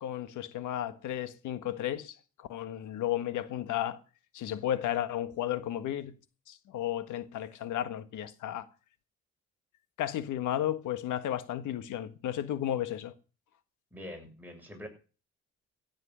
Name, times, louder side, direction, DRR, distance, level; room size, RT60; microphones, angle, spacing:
voice 1, 0.0-4.0 4.3-6.2 6.5-8.7 10.0-13.1, left 11 dB, 85° left, 1.5 m, -33 dB
voice 2, 13.9-14.9, left 1 dB, 5° right, 7.2 m, -44 dB
16.0 x 8.1 x 6.3 m
cardioid pair, 90°, 30 cm